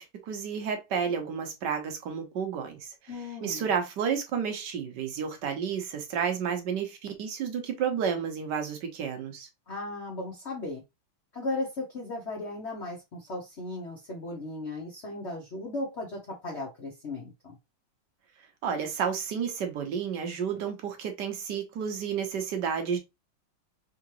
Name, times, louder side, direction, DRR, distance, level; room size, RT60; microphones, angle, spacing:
voice 1, 0.0-3.1 3.4-9.5 18.6-23.0, right 7 dB, 60° right, 1.4 m, -31 dB
voice 2, 3.1-3.7 9.7-10.8 11.3-17.6, left 2 dB, 45° left, 0.9 m, -36 dB
3.8 x 3.2 x 2.9 m
omnidirectional pair, 2.3 m